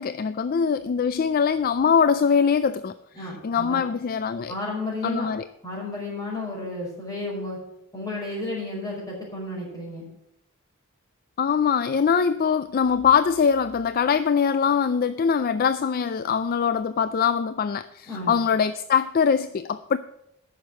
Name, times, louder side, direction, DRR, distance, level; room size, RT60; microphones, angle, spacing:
voice 1, 0.0-2.9 3.4-4.5 5.0-5.4 11.4-20.0, left 6 dB, 45° left, 13 dB, 0.3 m, -22 dB
voice 2, 3.1-3.8 4.5-5.3 5.6-7.6 7.9-10.1 18.1-18.3, left 2 dB, 15° left, -3 dB, 5.1 m, -32 dB
10.0 x 6.6 x 7.5 m, 0.80 s
head